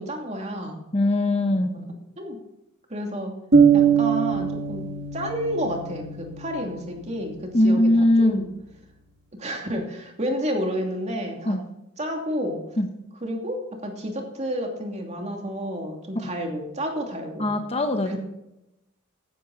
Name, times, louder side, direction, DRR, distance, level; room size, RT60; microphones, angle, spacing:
voice 1, 0.0-0.8 1.5-2.4 2.9-3.3 3.7-4.8 5.1-8.5 9.3-11.6 12.0-12.6 13.2-17.5 18.0-18.2, equal, 35° right, 2 dB, 2.8 m, -30 dB
voice 2, 0.9-1.7 7.5-8.5 11.5-11.6 12.8-12.9 17.4-18.2, left 1 dB, 30° left, 6 dB, 1.1 m, -20 dB
sound 1, 3.5-7.3, right 6 dB, 50° right, 1.6 m, -22 dB
14.5 x 12.0 x 4.2 m, 0.90 s
head